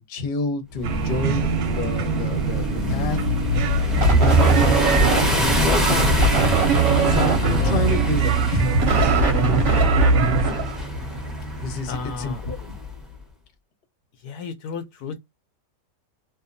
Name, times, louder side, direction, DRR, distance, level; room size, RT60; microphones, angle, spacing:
voice 1, 0.0-3.2 3.9-6.2 7.0-8.9 11.6-12.7, left 4 dB, 45° left, 0.8 m, -29 dB
sound 1, 0.8-12.9, left 1 dB, ahead, 0.6 m, -25 dB
sound 2, 0.8-10.5, right 5 dB, 70° right, 1.0 m, -24 dB
sound 3, 4.0-5.6 6.2-11.3, right 3 dB, 50° right, 0.8 m, -22 dB
voice 2, 9.7-10.1 11.9-12.4 14.2-15.2, left 5 dB, 75° left, 1.0 m, -34 dB
2.7 x 2.3 x 2.5 m
omnidirectional pair, 1.8 m